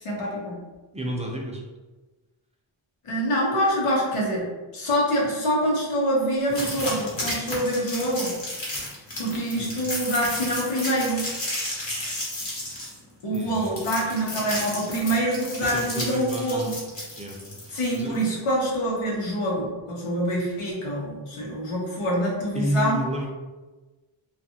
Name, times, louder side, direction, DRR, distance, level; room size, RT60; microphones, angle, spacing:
voice 1, 0.0-0.5 3.0-4.5 4.7-8.3 9.2-11.2 13.2-16.8 17.7-23.0, equal, 85° left, -3 dB, 1.0 m, -25 dB
voice 2, 0.9-1.6 9.6-9.7 13.3-13.8 15.6-16.7 17.2-17.4 17.6-18.2 22.5-23.3, equal, 15° right, -1 dB, 0.4 m, -30 dB
sound 1, 6.5-18.2, left 1 dB, 60° left, 1.1 m, -33 dB
2.6 x 2.5 x 2.7 m, 1.2 s
wide cardioid pair, 110°, 49 cm